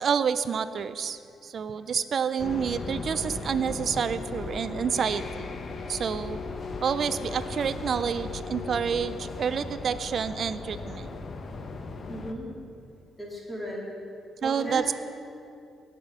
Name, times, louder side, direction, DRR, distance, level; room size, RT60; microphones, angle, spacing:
voice 1, 0.0-5.5 5.9-6.4 6.8-11.1 14.4-14.9, right 7 dB, 55° right, 12 dB, 0.4 m, -28 dB
sound 1, 2.4-12.3, left 4 dB, 45° left, 0.8 m, -37 dB
voice 2, 12.1-12.5 13.2-13.8 14.4-14.9, equal, 10° left, -5 dB, 2.8 m, -35 dB
17.0 x 5.6 x 5.3 m, 2.6 s
cardioid pair, 90°, 0 cm